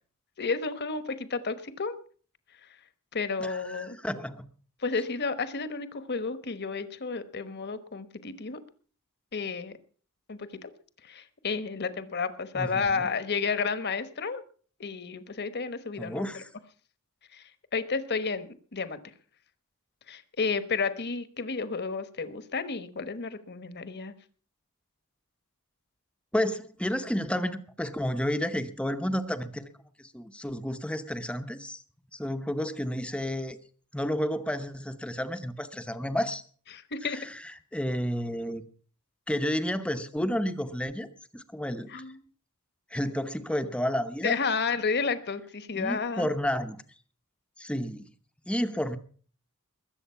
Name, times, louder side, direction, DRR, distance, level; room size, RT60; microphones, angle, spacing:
voice 1, 0.4-2.0 3.1-4.0 4.8-8.6 9.3-9.7 10.3-10.7 11.0-14.4 14.8-16.4 17.3-19.0 20.1-24.1 36.7-37.2 41.9-42.1 44.2-46.3, left 4 dB, 50° left, 13 dB, 1.2 m, -31 dB
voice 2, 3.4-4.4 12.5-13.1 16.0-16.5 26.3-29.7 30.0-31.8 32.1-33.6 33.9-36.4 37.0-38.6 39.3-41.1 41.3-42.0 42.9-44.4 45.7-46.8 47.6-48.1 48.5-49.0, equal, 5° left, 9 dB, 0.8 m, -31 dB
21.0 x 7.8 x 5.7 m, 0.43 s
head